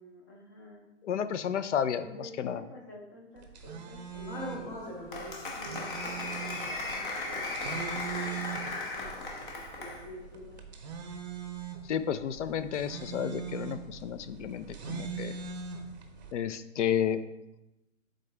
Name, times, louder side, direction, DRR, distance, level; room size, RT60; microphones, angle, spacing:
voice 1, 0.0-0.9 1.9-5.0 5.5-10.6, left 1 dB, 15° left, 0 dB, 0.5 m, -49 dB
voice 2, 1.0-2.6 11.9-15.4 16.3-17.2, left 9 dB, 70° left, 12 dB, 0.6 m, -32 dB
sound 1, 3.4-16.3, right 6 dB, 35° right, 0.6 m, -42 dB
Applause, 4.3-10.1, left 2 dB, 40° left, 1.1 m, -37 dB
8.4 x 3.9 x 3.3 m, 0.92 s
hypercardioid pair, 165°, 38 cm